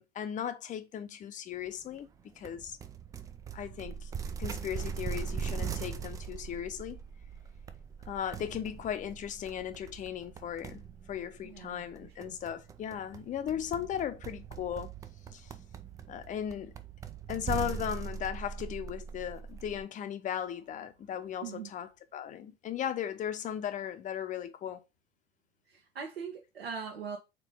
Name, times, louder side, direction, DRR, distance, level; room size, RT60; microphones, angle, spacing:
voice 1, 0.0-2.1 2.4-2.8 3.5-4.1 4.4-7.0 8.1-14.9 15.3-15.5 16.1-16.7 17.3-24.8, left 9 dB, 25° left, 0.7 m, -37 dB
sound 1, 2.4-19.9, right 7 dB, 10° right, 0.3 m, -41 dB
voice 2, 11.4-12.3 21.4-21.7 25.7-27.2, right 6 dB, 75° right, 1.3 m, -41 dB
4.6 x 3.8 x 5.4 m
figure-of-eight pair, 80°, 31 cm